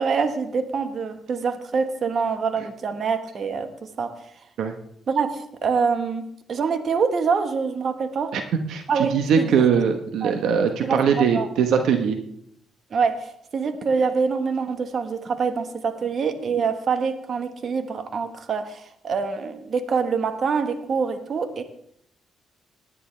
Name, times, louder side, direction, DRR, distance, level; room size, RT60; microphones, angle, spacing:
voice 1, 0.0-4.1 5.1-8.3 8.9-9.1 9.4-9.7 10.2-10.3 10.8-11.5 12.9-21.6, right 5 dB, 50° right, 8 dB, 1.4 m, -25 dB
voice 2, 8.7-12.2, right 7 dB, 75° right, 6 dB, 1.2 m, -21 dB
19.0 x 9.8 x 3.4 m, 0.70 s
cardioid pair, 90°, 0 cm